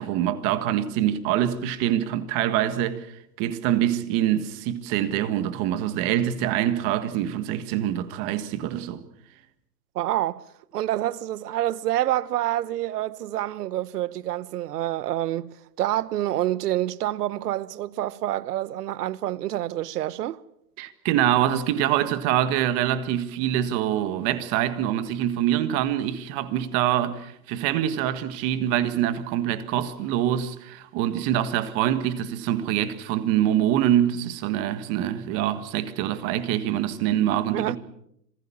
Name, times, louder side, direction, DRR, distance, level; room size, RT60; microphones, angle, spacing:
voice 1, 0.0-3.1 3.4-9.0 20.8-37.8, right 11 dB, 30° right, 1.7 m, -25 dB
voice 2, 9.9-10.4 10.7-20.4 37.5-37.8, right 14 dB, 65° right, 1.0 m, -27 dB
27.0 x 20.5 x 7.2 m
hypercardioid pair, 160°, 50 cm